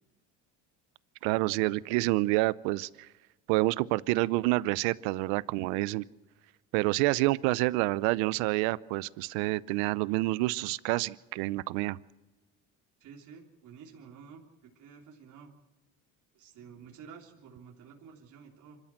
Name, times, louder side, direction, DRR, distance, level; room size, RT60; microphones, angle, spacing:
voice 1, 1.2-3.1 3.5-6.0 6.7-12.0, right 20 dB, 90° right, 19 dB, 0.7 m, -28 dB
voice 2, 13.0-15.5 16.3-18.8, right 6 dB, 55° right, 0 dB, 3.4 m, -51 dB
26.0 x 13.0 x 7.6 m, 1.1 s
cardioid pair, 110°, 36 cm